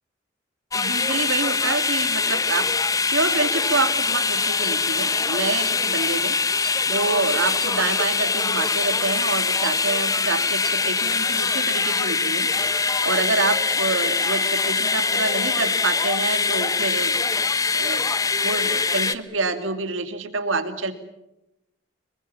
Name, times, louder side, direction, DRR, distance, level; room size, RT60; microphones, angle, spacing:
sound 1, 0.7-19.2, left 4 dB, 20° left, 0.8 m, -23 dB
voice 1, 0.7-2.7 3.1-6.3 6.9-12.5 13.0-17.2 17.7-18.1 18.4-20.9, right 3 dB, 85° right, 8 dB, 2.6 m, -27 dB
sound 2, 3.6-3.7 4.0-4.1 4.4-5.1 5.4-6.1 6.4-8.1 8.4-9.1 9.4-11.5, right 3 dB, 25° right, 3.8 m, -42 dB
26.0 x 22.0 x 7.3 m, 0.89 s
head